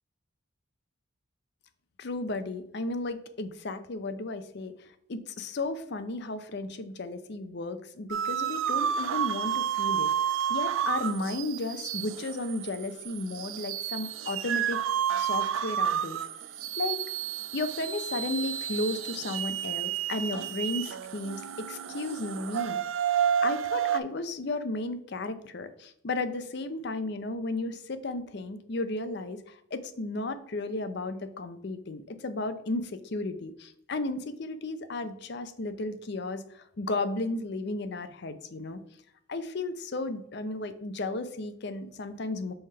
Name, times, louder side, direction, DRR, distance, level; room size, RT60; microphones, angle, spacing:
voice 1, 2.0-14.8 15.2-16.2 16.8-17.0 17.5-22.8 23.4-38.8 39.3-42.5, left 2 dB, 55° left, 11 dB, 0.5 m, -34 dB
sound 1, 8.1-24.0, right 9 dB, 70° right, 0.4 m, -30 dB
5.6 x 3.3 x 5.4 m, 0.74 s
head